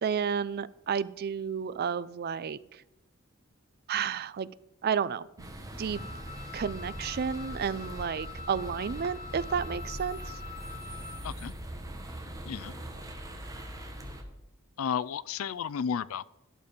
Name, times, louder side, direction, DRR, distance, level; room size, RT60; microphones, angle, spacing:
voice 1, 0.0-2.8 3.9-4.5 4.8-5.5 5.8-6.0 6.5-10.4, right 7 dB, 50° right, 17 dB, 0.4 m, -31 dB
sound 1, 5.4-14.2, right 1 dB, 15° right, 1.2 m, -41 dB
Wind instrument woodwind instrument, 5.9-11.3, left 7 dB, 35° left, 1.3 m, -45 dB
voice 2, 14.8-16.3, left 7 dB, 85° left, 20 dB, 0.4 m, -32 dB
11.5 x 6.9 x 5.1 m, 0.97 s
head